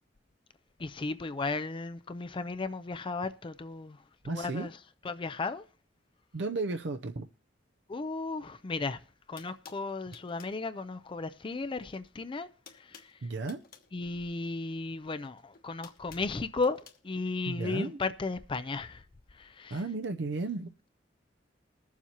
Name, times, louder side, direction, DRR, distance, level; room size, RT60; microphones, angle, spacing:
voice 1, 0.8-4.7 5.0-5.7 7.9-9.0 9.3-13.3 13.9-19.1 19.3-19.8, left 3 dB, 30° left, 0.4 m, -35 dB
voice 2, 4.2-4.7 6.3-7.3 13.2-13.6 17.5-18.0 19.7-20.7, right 3 dB, 70° right, 0.6 m, -34 dB
sound 1, 8.8-8.9 9.4-10.6 11.8-12.1 12.3-13.9 15.1-17.0, left 7 dB, 55° left, 1.3 m, -54 dB
21.5 x 7.3 x 2.9 m
head